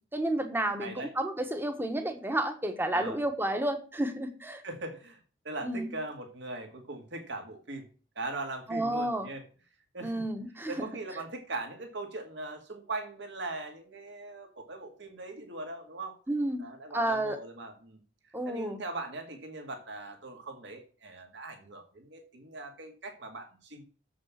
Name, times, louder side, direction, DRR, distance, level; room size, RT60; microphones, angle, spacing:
voice 1, 0.1-4.6 5.6-5.9 8.7-9.3 10.0-10.9 16.3-16.6 16.9-17.4 18.3-18.8, right 1 dB, 10° right, 6 dB, 1.2 m, -31 dB
voice 2, 0.8-1.1 2.9-3.2 4.6-5.2 5.4-7.9 8.2-9.4 9.9-10.2 10.7-16.1 16.6-18.0 18.4-23.8, right 2 dB, 65° right, 4 dB, 2.1 m, -40 dB
7.5 x 6.2 x 7.3 m, 0.38 s
head